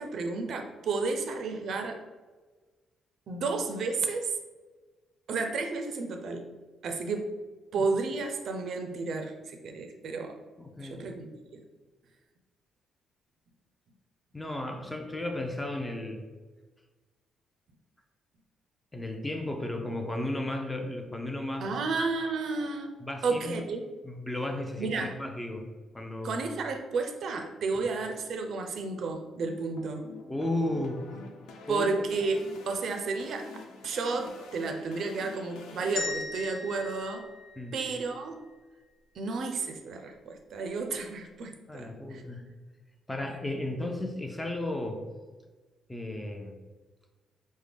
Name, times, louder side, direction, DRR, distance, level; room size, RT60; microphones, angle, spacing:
voice 1, 0.0-2.0 3.3-4.3 5.3-6.4 6.8-7.4 7.7-10.4 10.8-11.6 21.6-22.9 23.2-23.8 24.8-25.2 26.2-30.1 31.7-37.3 37.7-38.4 39.2-42.2, right 4 dB, 65° right, 5 dB, 0.4 m, -32 dB
voice 2, 10.6-11.1 14.3-16.3 18.9-21.7 23.0-23.7 24.0-25.7 25.9-26.4 27.8-27.9 30.3-31.0 31.7-31.9 37.6-37.8 41.7-42.5 43.1-45.0 45.9-46.6, left 1 dB, 10° left, 3 dB, 0.4 m, -34 dB
sound 1, 29.1-36.0, left 3 dB, 85° left, 0.3 m, -47 dB
sound 2, 36.0-38.2, left 3 dB, 70° left, 0.8 m, -38 dB
3.4 x 2.1 x 3.3 m, 1.3 s
cardioid pair, 90°, 0 cm